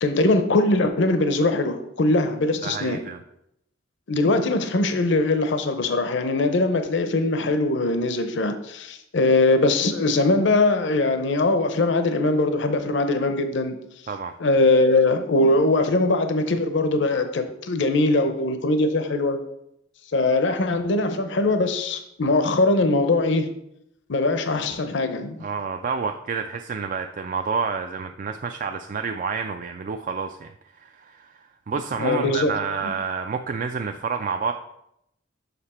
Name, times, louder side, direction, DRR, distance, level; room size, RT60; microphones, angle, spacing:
voice 1, 0.0-3.0 4.1-13.8 14.4-19.4 20.1-23.5 24.1-25.4 32.0-32.5, left 2 dB, 65° left, 8 dB, 0.7 m, -21 dB
voice 2, 2.6-3.2 14.1-14.3 25.4-34.5, right 5 dB, 40° right, 6 dB, 0.3 m, -29 dB
6.8 x 5.8 x 4.2 m, 0.80 s
head